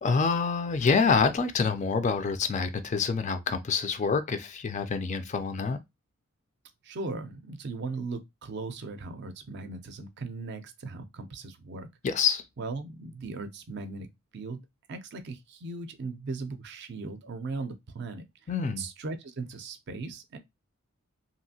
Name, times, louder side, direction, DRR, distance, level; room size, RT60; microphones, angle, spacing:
voice 1, 0.0-5.8 12.0-12.4 18.5-18.8, left 5 dB, 35° left, 0.3 m, -26 dB
voice 2, 6.8-11.9 12.6-14.1 14.3-18.2 18.8-20.4, right 3 dB, 50° right, 0.4 m, -38 dB
2.7 x 2.5 x 2.7 m
head